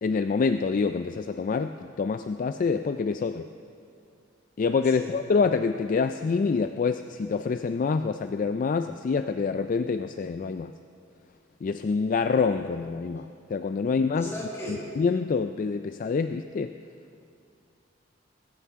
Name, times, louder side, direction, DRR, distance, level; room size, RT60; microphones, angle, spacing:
voice 1, 0.0-3.5 4.6-10.7 11.6-14.3 15.0-16.7, left 5 dB, 45° left, 9 dB, 0.3 m, -26 dB
voice 2, 13.9-14.8, left 1 dB, 15° left, -5 dB, 4.4 m, -37 dB
21.0 x 14.5 x 3.6 m, 2.5 s
head